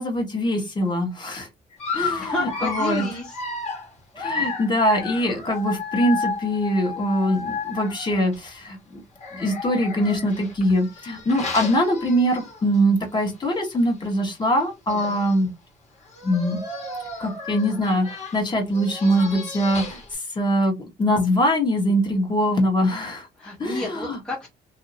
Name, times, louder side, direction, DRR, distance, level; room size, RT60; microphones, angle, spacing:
voice 1, 0.0-1.5 1.9-3.1 4.2-9.0 9.3-15.5 16.2-16.6 17.2-20.0 20.3-23.3 23.6-24.2, equal, 25° left, 1.2 m, -23 dB
Dog, 1.8-8.4 9.2-12.8 13.2-13.4 13.6-13.7 14.6-14.7 14.9-15.4 16.1-20.2, left 4 dB, 40° left, 1.5 m, -32 dB
voice 2, 2.2-3.4 14.9-15.2 23.4-24.5, left 1 dB, 5° left, 0.9 m, -31 dB
2.7 x 2.7 x 2.7 m
cardioid pair, 110°, 17 cm